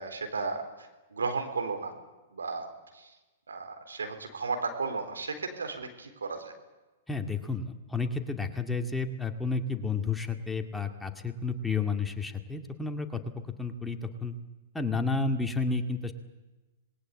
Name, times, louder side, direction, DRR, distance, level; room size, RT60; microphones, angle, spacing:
voice 1, 0.0-1.9 2.3-3.1 3.5-6.5, right 4 dB, 85° right, 6 dB, 3.9 m, -34 dB
voice 2, 7.1-14.3 14.7-16.1, left 4 dB, 5° left, 5 dB, 2.1 m, -31 dB
26.5 x 20.5 x 8.4 m, 1.1 s
hypercardioid pair, 115°, 0 cm